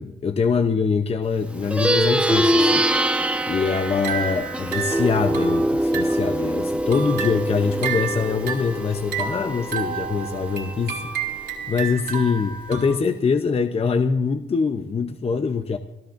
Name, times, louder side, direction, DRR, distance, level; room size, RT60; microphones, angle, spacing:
voice 1, 0.0-2.8 3.5-11.1 11.7-15.8, left 5 dB, 30° left, 7 dB, 0.8 m, -23 dB
Plucked string instrument, 1.6-11.3, right 1 dB, 5° right, 1.1 m, -24 dB
sound 1, 3.7-6.4 6.7-12.9, right 7 dB, 55° right, 2.8 m, -31 dB
26.0 x 13.0 x 2.6 m, 0.94 s
cardioid pair, 90°, 20 cm